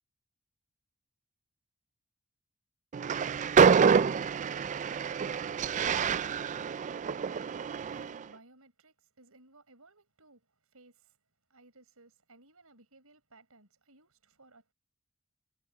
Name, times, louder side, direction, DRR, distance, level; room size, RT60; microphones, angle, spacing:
Train, 2.9-8.2, right 6 dB, 35° right, 0.3 m, -27 dB
voice 1, 7.9-11.2 11.5-14.7, right 2 dB, 70° right, 6.6 m, -59 dB
head